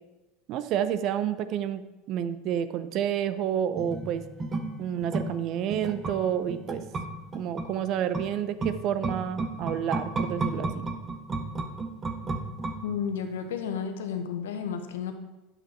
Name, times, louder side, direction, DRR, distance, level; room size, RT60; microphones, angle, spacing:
voice 1, 0.5-4.2 4.8-6.8 7.3-10.9, right 9 dB, 55° right, 12 dB, 0.7 m, -29 dB
sound 1, 3.7-13.3 13.6-13.7, right 2 dB, 25° right, 1.1 m, -34 dB
voice 2, 12.8-15.1, left 7 dB, 80° left, 7 dB, 1.1 m, -32 dB
9.4 x 7.6 x 4.5 m, 1.1 s
hypercardioid pair, 90°, 0 cm